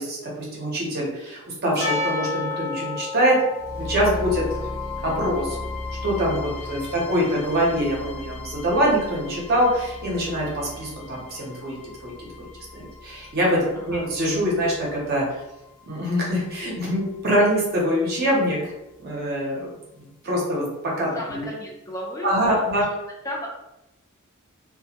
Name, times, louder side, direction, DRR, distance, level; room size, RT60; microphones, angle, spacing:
voice 1, 0.0-3.4 3.8-4.4 5.0-5.6 6.0-12.5 12.7-15.4 15.8-18.7 19.0-19.7 20.0-20.7 21.0-21.4 22.2-22.8, equal, 45° right, -3 dB, 0.7 m, -24 dB
Percussion, 1.8-7.0, left 3 dB, 50° left, 1.0 m, -32 dB
sound 1, 3.6-17.6, left 3 dB, 75° left, 0.4 m, -37 dB
voice 2, 13.7-14.1 21.1-22.6 23.2-23.5, equal, 15° left, -2 dB, 0.5 m, -34 dB
2.1 x 2.1 x 2.8 m, 0.92 s
head